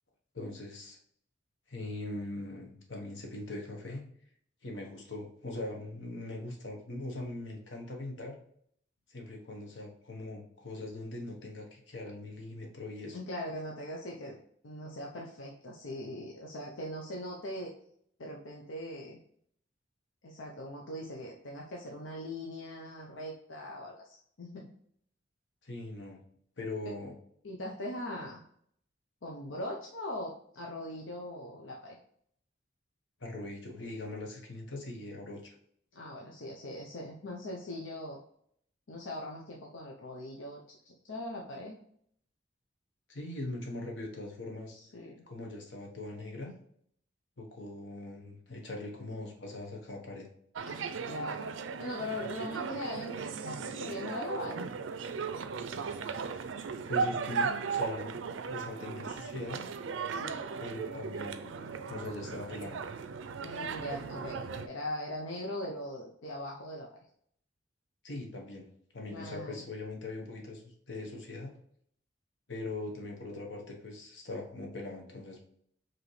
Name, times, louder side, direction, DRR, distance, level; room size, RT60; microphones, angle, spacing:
voice 1, 0.3-1.0 1.7-4.0 4.6-8.4 9.1-13.2 25.6-26.2 26.6-27.1 33.2-35.5 43.1-44.8 45.3-46.5 47.4-50.3 56.3-56.6 56.9-58.2 58.5-59.6 60.6-62.8 68.0-68.7 68.9-71.5 72.5-75.4, left 2 dB, 70° left, 1 dB, 1.2 m, -41 dB
voice 2, 13.1-14.4 14.6-17.7 18.2-19.2 20.2-24.7 27.4-28.4 29.2-32.0 35.9-38.2 38.9-41.8 44.7-45.2 50.7-54.7 60.1-60.4 63.4-66.9 69.1-69.6, left 1 dB, 90° left, -1 dB, 0.7 m, -41 dB
sound 1, 50.6-64.7, right 5 dB, 80° right, 0.4 m, -37 dB
5.0 x 3.0 x 3.2 m, 0.65 s
head